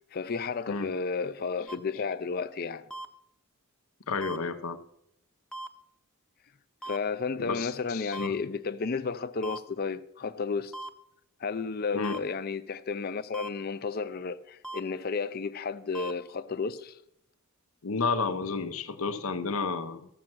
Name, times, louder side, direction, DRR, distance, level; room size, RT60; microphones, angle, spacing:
voice 1, 0.1-2.9 6.8-10.7 11.4-17.0, left 4 dB, 45° left, 0.5 m, -32 dB
sound 1, 1.7-1.8 2.9-3.1 4.2-4.4 5.5-5.7 6.8-7.0 8.1-8.3 9.4-9.6 10.7-10.9 12.0-12.2 13.3-13.5 14.6-14.8 15.9-16.1, right 2 dB, 5° left, 0.7 m, -38 dB
voice 2, 4.1-4.8 7.4-8.4 11.9-12.1 17.8-20.1, left 4 dB, 70° left, 0.8 m, -31 dB
13.5 x 7.4 x 6.1 m
head